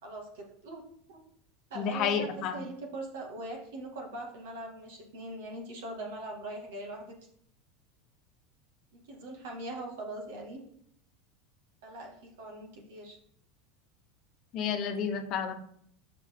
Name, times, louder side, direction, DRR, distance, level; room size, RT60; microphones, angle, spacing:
voice 1, 0.0-1.2 1.7-7.2 8.9-10.6 11.8-13.2, right 2 dB, 85° right, 1 dB, 2.0 m, -41 dB
voice 2, 1.8-2.6 14.5-15.5, left 7 dB, 50° left, 6 dB, 0.9 m, -30 dB
6.3 x 5.8 x 3.7 m, 0.67 s
supercardioid pair, 130°, 0 cm